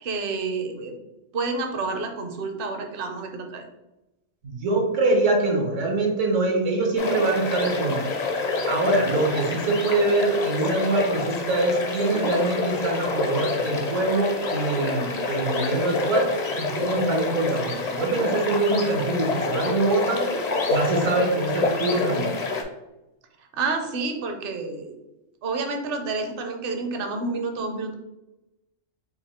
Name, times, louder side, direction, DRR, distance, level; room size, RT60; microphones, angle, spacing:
voice 1, 0.0-0.9 1.3-3.7 23.5-24.9 25.4-27.9, right 3 dB, 55° right, 5 dB, 0.8 m, -29 dB
voice 2, 4.4-8.0 8.7-16.3 16.6-20.2 20.7-22.3, right 2 dB, 75° right, 1 dB, 1.3 m, -24 dB
sound 1, 7.0-22.6, left 3 dB, 50° left, 0.5 m, -27 dB
4.1 x 2.6 x 4.2 m, 0.97 s
omnidirectional pair, 1.3 m